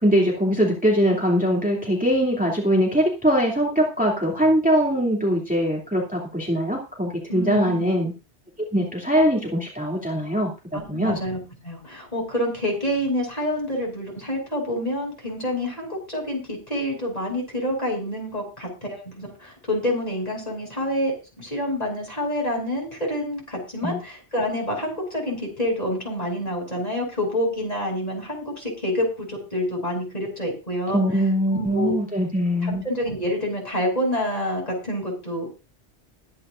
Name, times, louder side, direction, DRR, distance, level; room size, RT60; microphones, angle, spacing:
voice 1, 0.0-8.1 8.7-11.2 23.8-24.0 30.9-32.8, equal, 5° right, -2 dB, 2.9 m, -22 dB
voice 2, 7.3-7.9 10.7-31.0 31.5-31.9 32.6-35.5, equal, 35° left, 0 dB, 6.6 m, -27 dB
21.5 x 9.9 x 2.6 m, 0.29 s
omnidirectional pair, 1.1 m